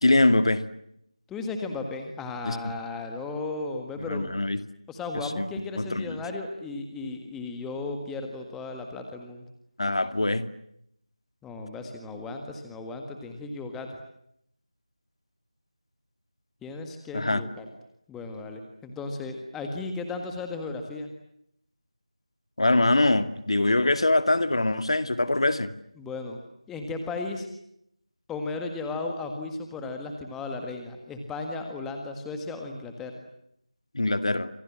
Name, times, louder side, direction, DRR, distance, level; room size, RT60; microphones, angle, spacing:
voice 1, 0.0-0.6 2.4-2.7 4.0-4.6 5.1-6.2 9.8-10.5 17.1-17.4 22.6-25.7 33.9-34.5, left 2 dB, 55° left, 11 dB, 2.3 m, -23 dB
voice 2, 1.3-4.3 4.9-9.4 11.4-13.9 16.6-17.7 18.1-21.1 26.0-26.4 26.7-27.5 28.3-33.1, left 3 dB, 5° left, 4 dB, 1.7 m, -35 dB
29.5 x 27.0 x 7.5 m, 0.74 s
figure-of-eight pair, 170°, 4 cm